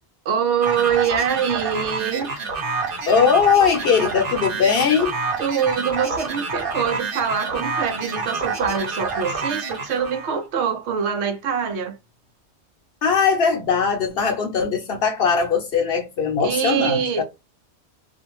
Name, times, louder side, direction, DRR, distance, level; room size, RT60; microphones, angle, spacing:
voice 1, 0.3-2.3 5.4-12.0 16.4-17.2, right 7 dB, 85° right, 0.9 m, -24 dB
sound 1, 0.6-10.4, right 4 dB, 55° right, 1.0 m, -28 dB
voice 2, 3.1-5.1 13.0-17.2, left 6 dB, 65° left, 0.8 m, -20 dB
2.5 x 2.1 x 2.9 m
omnidirectional pair, 1.1 m